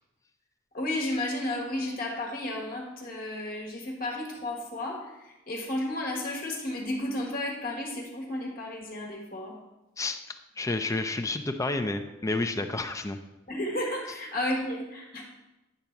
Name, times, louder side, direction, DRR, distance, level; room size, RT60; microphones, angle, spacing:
voice 1, 0.7-9.6 13.5-15.2, left 1 dB, 45° left, 0 dB, 1.5 m, -33 dB
voice 2, 10.0-13.2, left 2 dB, 15° left, 7 dB, 0.4 m, -30 dB
10.0 x 4.0 x 5.8 m, 0.99 s
head